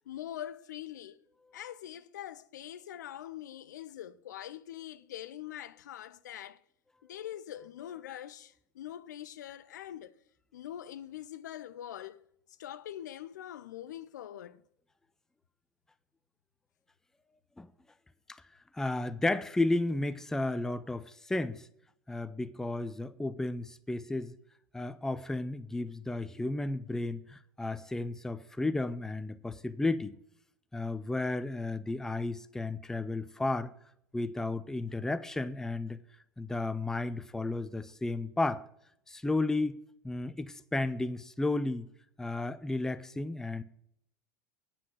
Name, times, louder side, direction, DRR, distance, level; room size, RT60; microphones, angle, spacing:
voice 1, 0.1-1.2 1.5-6.6 7.1-10.1 10.5-12.2 12.6-14.6, left 11 dB, 60° left, 0.5 m, -43 dB
voice 2, 18.7-21.6 22.1-24.3 24.7-30.1 30.7-33.7 34.1-36.0 36.4-38.6 39.1-39.8 40.0-41.9 42.2-43.6, left 2 dB, 5° left, 0.5 m, -33 dB
9.6 x 5.8 x 7.5 m
figure-of-eight pair, 80°, 11 cm